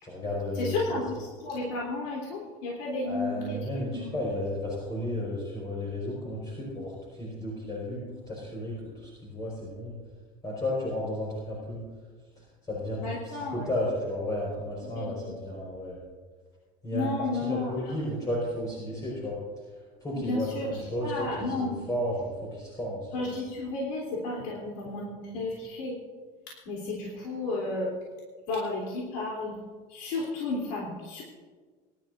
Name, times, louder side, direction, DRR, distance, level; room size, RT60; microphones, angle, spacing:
voice 1, 0.0-1.0 3.0-10.0 10.4-11.8 12.4-16.0 16.8-17.1 17.4-19.4 20.0-23.1, left 1 dB, 25° left, -5 dB, 4.9 m, -33 dB
voice 2, 0.5-3.6 3.9-4.1 13.0-13.7 14.8-15.3 16.9-17.9 20.1-21.9 23.1-26.0 26.5-27.9 28.5-29.6 29.9-31.2, left 2 dB, 85° left, -3 dB, 3.4 m, -33 dB
22.5 x 12.0 x 2.6 m, 1.5 s
cardioid pair, 125°, 15 cm